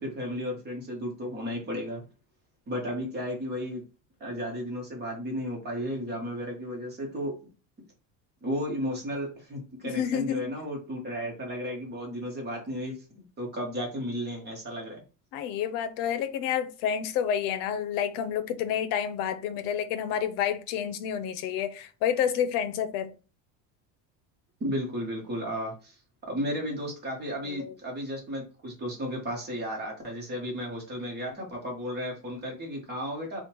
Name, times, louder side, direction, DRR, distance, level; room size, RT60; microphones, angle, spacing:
voice 1, 0.0-2.0 2.7-3.8 4.2-7.3 8.4-13.0 13.4-15.0 24.6-25.9 26.3-33.4, equal, 25° right, 1.3 m, -34 dB
voice 2, 9.8-10.5 15.3-23.1 27.4-27.7, left 8 dB, 70° left, 0.8 m, -29 dB
3.8 x 2.5 x 4.5 m
cardioid pair, 165°, 42 cm